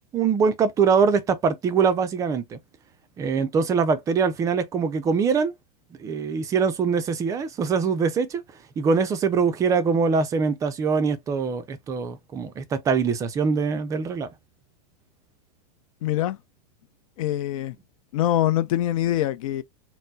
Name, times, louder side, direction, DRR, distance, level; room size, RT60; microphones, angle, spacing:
voice 1, 0.1-2.6 3.2-5.5 6.0-8.4 8.8-14.3, right 5 dB, 15° right, 0.4 m, -23 dB
voice 2, 16.0-16.4 17.2-17.8 18.1-19.6, left 13 dB, 60° left, 0.6 m, -24 dB
4.2 x 2.0 x 2.6 m
supercardioid pair, 145°, 20 cm